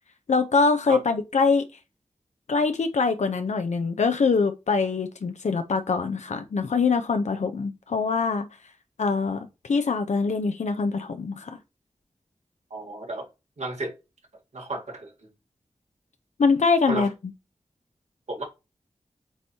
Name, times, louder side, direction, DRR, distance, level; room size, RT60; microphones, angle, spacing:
voice 1, 0.3-1.6 2.5-8.5 9.0-11.6 16.4-17.1, left 4 dB, 80° left, 0.6 m, -23 dB
voice 2, 12.7-13.3 13.6-13.9 14.5-15.1 16.9-17.1 18.3-18.4, right 2 dB, 75° right, 1.9 m, -32 dB
8.0 x 2.7 x 4.3 m
wide cardioid pair, 60°, 12 cm